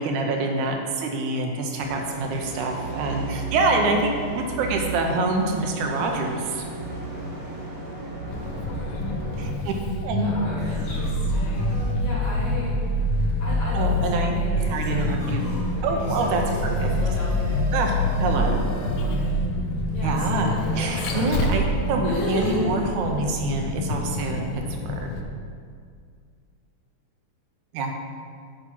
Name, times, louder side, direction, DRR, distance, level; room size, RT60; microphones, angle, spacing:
voice 1, 0.0-6.7 9.4-9.7 10.0-10.3 13.7-14.4 14.7-15.5 15.8-16.9 17.7-18.0 18.2-18.6 20.0-24.5 24.8-25.0 27.7-27.9, right 3 dB, 85° right, 2 dB, 2.2 m, -26 dB
sound 1, 1.7-9.5, right 3 dB, 45° right, 2.4 m, -35 dB
sound 2, 8.2-9.4 9.9-10.0 10.6-19.0, equal, 10° left, 1.7 m, -43 dB
Vehicle, 8.3-25.2, left 1 dB, 85° left, 2.0 m, -26 dB
voice 2, 10.2-12.8 13.4-17.6 18.2-19.4 19.9-21.5 22.0-22.8, left 1 dB, 70° left, -7 dB, 3.6 m, -33 dB
8.2 x 6.0 x 4.3 m, 2.1 s
omnidirectional pair, 3.4 m